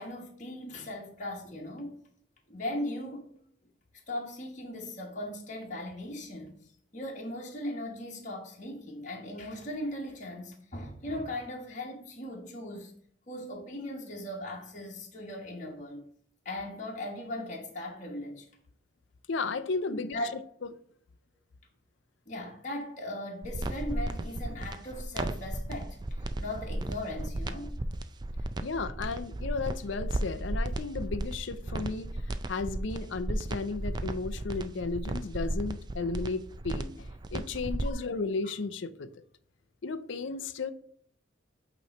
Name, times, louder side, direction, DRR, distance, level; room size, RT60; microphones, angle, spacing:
voice 1, 0.0-1.9 2.5-3.2 4.1-6.6 6.9-12.9 13.3-16.0 16.4-18.5 19.9-20.3 22.3-27.7 37.8-38.1, left 1 dB, 40° left, 1.2 m, -38 dB
voice 2, 19.3-20.7 28.6-39.2 39.8-40.7, left 4 dB, 70° left, 0.5 m, -34 dB
sound 1, 23.4-37.9, right 1 dB, 20° right, 0.3 m, -34 dB
8.3 x 3.1 x 4.2 m
head